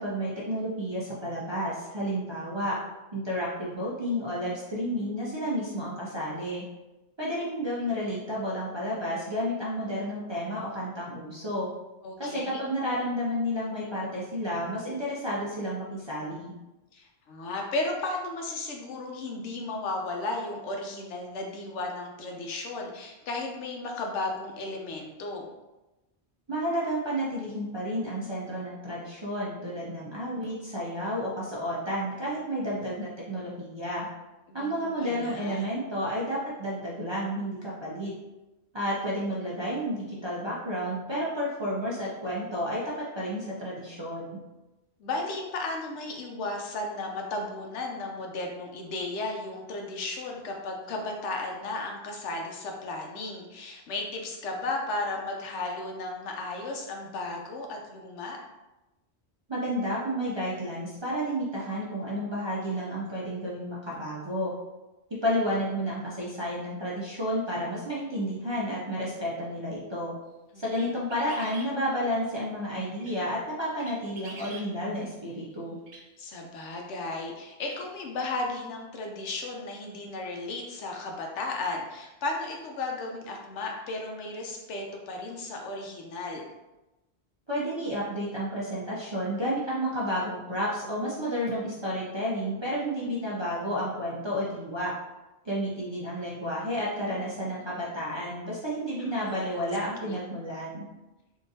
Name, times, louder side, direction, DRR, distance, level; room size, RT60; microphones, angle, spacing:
voice 1, 0.0-2.7 3.1-6.6 7.2-11.7 12.2-16.5 26.5-34.1 34.5-38.1 38.7-44.4 59.5-64.5 65.1-70.1 70.6-75.8 87.5-94.9 95.4-100.8, equal, 35° right, -6 dB, 0.4 m, -31 dB
voice 2, 12.0-12.6 16.9-25.5 34.5-35.7 45.0-58.4 70.5-71.0 76.2-86.4 99.3-99.6 100.0-100.2, left 2 dB, 90° left, 1 dB, 1.0 m, -34 dB
sound 1, 70.7-71.7 72.8-73.2 73.8-74.7 75.9-76.0 77.1-77.2 77.6-77.8, right 3 dB, 65° right, 1.0 m, -45 dB
3.7 x 2.5 x 2.6 m, 1.0 s
omnidirectional pair, 1.1 m